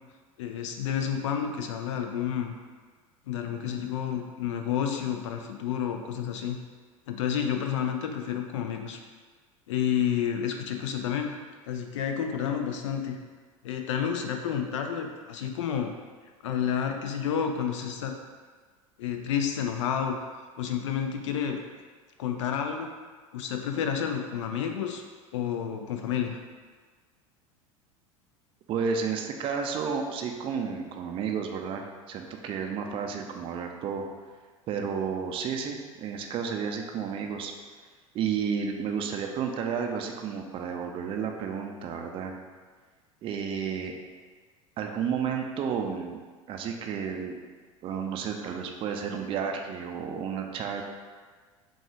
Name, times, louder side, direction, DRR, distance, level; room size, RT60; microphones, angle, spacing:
voice 1, 0.4-2.5 3.3-6.6 7.1-9.0 9.7-11.4 11.7-13.2 13.6-15.9 16.4-18.1 19.0-21.6 22.2-22.9 23.3-25.0 25.3-26.4, left 8 dB, 60° left, 4 dB, 0.5 m, -30 dB
voice 2, 28.7-34.0 34.7-37.5 38.1-42.3 43.2-43.9 44.8-46.2 46.5-47.4 47.8-50.8, right 6 dB, 30° right, 3 dB, 0.5 m, -32 dB
5.9 x 2.3 x 3.6 m, 1.5 s
figure-of-eight pair, 75°, 18 cm